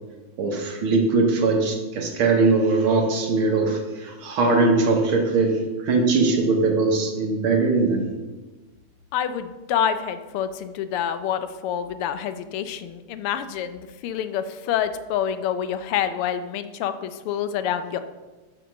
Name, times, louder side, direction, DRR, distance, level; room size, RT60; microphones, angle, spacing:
voice 1, 0.4-8.1, right 3 dB, 75° right, 2 dB, 2.0 m, -21 dB
voice 2, 9.1-18.0, left 9 dB, 90° left, 10 dB, 1.6 m, -27 dB
7.6 x 5.1 x 6.3 m, 1.2 s
omnidirectional pair, 2.4 m